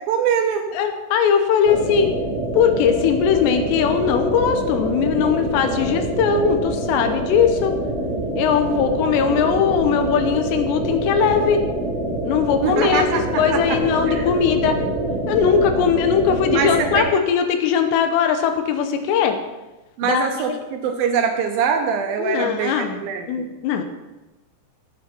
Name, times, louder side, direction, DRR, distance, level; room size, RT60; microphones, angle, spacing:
voice 1, 0.1-0.7 12.6-13.2 13.5-13.8 14.1-14.3 16.5-17.1 20.0-23.5, right 7 dB, 75° right, 4 dB, 2.3 m, -23 dB
voice 2, 0.7-2.1 2.5-7.7 8.4-11.6 12.2-14.8 15.3-19.4 20.0-20.6 22.2-23.0 23.3-23.8, left 7 dB, 85° left, 7 dB, 3.2 m, -20 dB
sound 1, 1.6-17.0, right 1 dB, 15° right, 2.8 m, -25 dB
13.5 x 8.5 x 4.4 m, 1.1 s
omnidirectional pair, 4.8 m